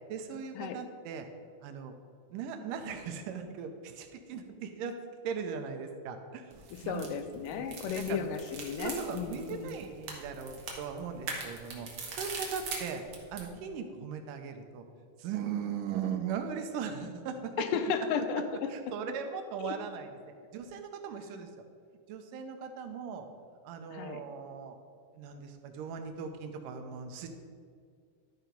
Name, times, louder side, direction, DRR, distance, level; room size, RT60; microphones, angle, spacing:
voice 1, 0.1-1.3 1.6-1.9 2.3-5.0 5.2-6.5 6.8-7.1 7.5-7.7 7.9-8.3 8.8-11.9 12.2-13.0 13.3-14.8 15.2-17.7 18.7-20.1 20.5-21.5 22.1-23.3 23.6-24.8 25.1-27.3, right 7 dB, 85° right, 6 dB, 2.3 m, -38 dB
sound 1, 6.5-13.5, right 4 dB, 55° right, 1.5 m, -42 dB
voice 2, 6.9-9.7 17.6-18.7 19.6-19.7 23.9-24.2, left 6 dB, 85° left, 8 dB, 2.3 m, -34 dB
12.0 x 4.7 x 5.1 m, 2.1 s
omnidirectional pair, 3.8 m